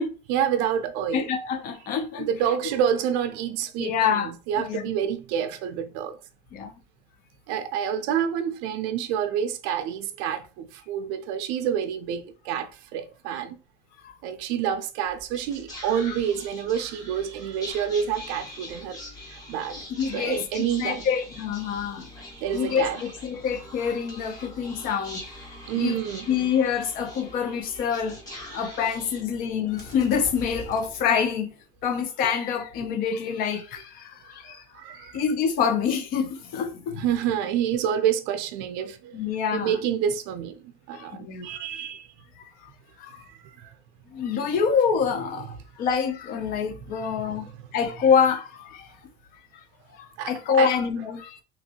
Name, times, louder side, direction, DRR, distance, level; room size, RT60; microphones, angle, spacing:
voice 1, 0.3-1.3 2.2-6.2 7.5-13.6 14.2-19.0 19.3-19.8 20.1-21.0 22.3-23.0 25.7-26.3 27.7-27.9 28.3-28.7 34.4-35.2 37.0-39.2 39.5-42.1 43.2-43.7 47.0-47.5 50.2-50.7, right 9 dB, 70° right, 0.5 m, -28 dB
voice 2, 1.1-2.3 3.8-4.8 6.5-6.7 14.0-14.1 16.1-16.2 20.0-22.1 22.5-25.3 25.8-26.0 26.3-31.5 31.8-34.6 35.1-37.0 39.1-39.8 40.9-41.6 42.4-42.7 43.0-43.2 44.1-48.9 50.0-51.4, left 6 dB, 50° left, 0.5 m, -26 dB
Whispering, 15.0-31.6, left 1 dB, 20° left, 0.9 m, -43 dB
2.9 x 2.6 x 2.8 m
cardioid pair, 170°, 20 cm